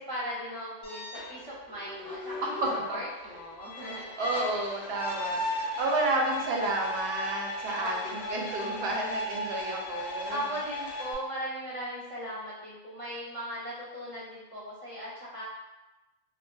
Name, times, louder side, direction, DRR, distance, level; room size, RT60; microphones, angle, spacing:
voice 1, 0.0-2.3 2.9-4.1 5.5-5.8 7.7-8.4 10.3-15.4, equal, 25° right, -9 dB, 0.7 m, -38 dB
sound 1, 0.8-11.1, left 1 dB, 85° left, 1.0 m, -36 dB
voice 2, 2.4-3.0 4.2-10.4, right 2 dB, 65° right, 0 dB, 0.7 m, -31 dB
2.6 x 2.4 x 2.2 m, 1.0 s
omnidirectional pair, 1.2 m